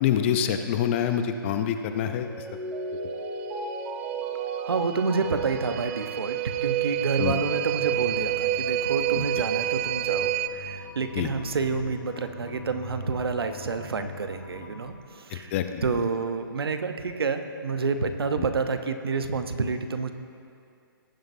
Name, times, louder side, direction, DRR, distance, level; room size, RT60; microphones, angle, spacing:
voice 1, 0.0-2.3 7.2-7.3 9.2-9.3 11.2-11.3 15.3-15.8 18.4-18.5, left 9 dB, 30° left, 8 dB, 0.6 m, -26 dB
Mallet percussion, 2.2-7.2, right 1 dB, 10° right, 1.1 m, -37 dB
sound 1, 3.0-10.5, right 13 dB, 30° right, 0.4 m, -29 dB
voice 2, 4.6-15.5 15.8-20.1, right 4 dB, 85° right, 8 dB, 0.9 m, -29 dB
sound 2, 6.9-15.0, left 1 dB, 50° left, 3.1 m, -43 dB
18.5 x 9.2 x 2.7 m, 2.5 s
hypercardioid pair, 150°, 12 cm